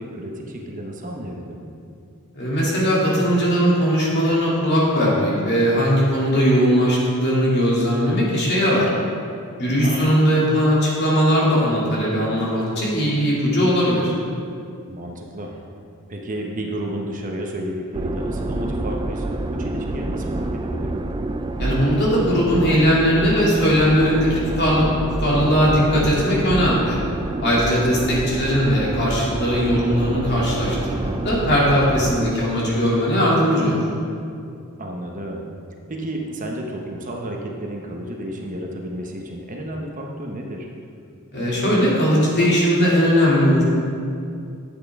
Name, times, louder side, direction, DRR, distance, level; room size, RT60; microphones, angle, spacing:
voice 1, 0.0-1.7 9.8-10.1 14.9-15.6 16.1-21.0 27.7-28.1 34.8-35.5 35.9-40.7, right 1 dB, 35° right, 0 dB, 0.9 m, -32 dB
voice 2, 2.3-8.9 9.6-14.1 21.6-24.9 25.2-27.0 27.4-33.8 41.3-43.6, equal, 50° left, -6 dB, 2.6 m, -19 dB
sound 1, 17.9-32.3, right 2 dB, 20° right, 0.3 m, -27 dB
11.5 x 8.2 x 3.6 m, 2.4 s
head